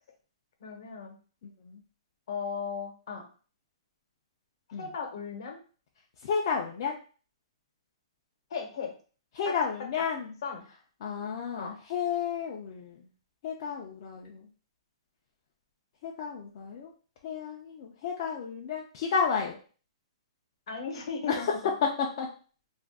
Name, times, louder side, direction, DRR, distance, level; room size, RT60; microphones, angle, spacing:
voice 1, 0.6-1.2 2.3-3.3 4.8-5.6 8.5-8.9 9.5-9.6 10.4-10.6 11.6-11.7 20.7-21.6, left 5 dB, 55° left, 3 dB, 0.9 m, -36 dB
voice 2, 1.4-1.8 4.7-4.9 6.2-7.0 9.3-10.3 11.0-13.1 13.4-14.5 16.0-16.9 17.2-19.5 21.3-21.5 22.2-22.3, left 6 dB, 40° left, -1 dB, 0.4 m, -32 dB
2.5 x 2.2 x 3.4 m, 0.39 s
hypercardioid pair, 170°, 3 cm